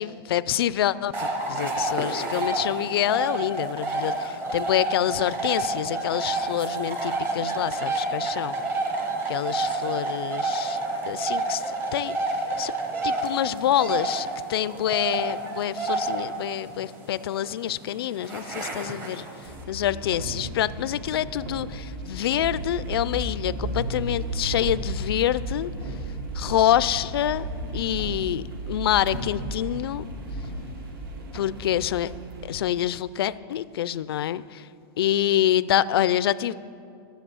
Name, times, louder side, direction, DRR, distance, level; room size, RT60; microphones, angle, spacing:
voice 1, 0.0-8.5 9.3-10.8 11.1-12.2 12.6-12.7 13.0-19.2 19.7-25.7 26.3-27.5 27.7-30.0 31.3-32.1 32.4-34.6 35.0-36.5, left 11 dB, 75° left, 17 dB, 0.4 m, -26 dB
sound 1, 1.1-19.6, right 2 dB, 15° right, 0.9 m, -29 dB
sound 2, 19.4-32.5, right 1 dB, 65° right, 1.7 m, -34 dB
12.5 x 7.5 x 7.0 m, 2.5 s
supercardioid pair, 175°, 13 cm